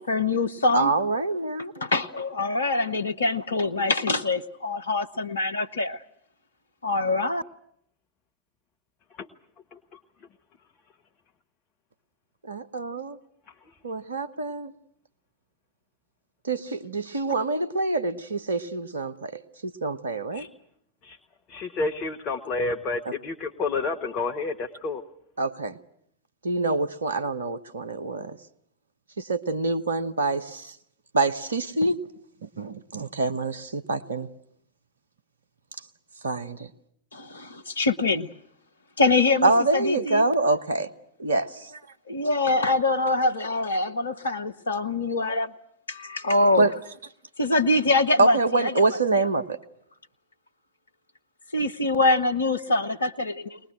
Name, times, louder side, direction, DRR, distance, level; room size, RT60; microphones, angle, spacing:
voice 1, 0.1-0.9 1.8-6.0 6.8-7.4 37.1-38.3 39.0-40.2 42.1-45.5 45.9-46.7 47.4-48.7 51.5-53.6, left 2 dB, 75° left, 12 dB, 0.9 m, -24 dB
voice 2, 0.7-1.7 12.4-13.2 13.8-14.7 16.4-20.5 25.4-25.8 26.4-28.4 29.2-30.8 31.1-32.0 32.4-34.3 36.2-36.7 39.4-40.9 41.2-41.8 46.6-46.7 48.2-49.6, right 3 dB, 70° right, 10 dB, 1.0 m, -26 dB
voice 3, 21.5-25.0, left 3 dB, 35° left, 4 dB, 1.3 m, -29 dB
22.5 x 20.0 x 8.9 m, 0.70 s
figure-of-eight pair, 90°, 0 cm